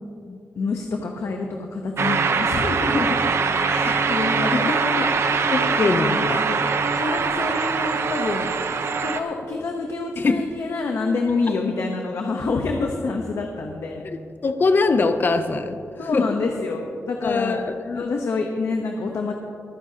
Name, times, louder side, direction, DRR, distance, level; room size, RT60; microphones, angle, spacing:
voice 1, 0.6-3.2 3.7-4.8 5.2-6.7 7.0-8.5 9.0-14.0 16.0-17.6 17.9-19.3, left 3 dB, 65° left, 2 dB, 0.9 m, -27 dB
sound 1, 2.0-9.2, right 5 dB, 60° right, 0.7 m, -22 dB
voice 2, 4.5-5.1 5.5-6.4 10.2-10.4 14.0-14.2 14.4-15.8 16.1-16.2 17.2-18.0, left 3 dB, 40° left, 8 dB, 0.5 m, -22 dB
22.5 x 9.8 x 2.8 m, 2.6 s
wide cardioid pair, 150°, 5 cm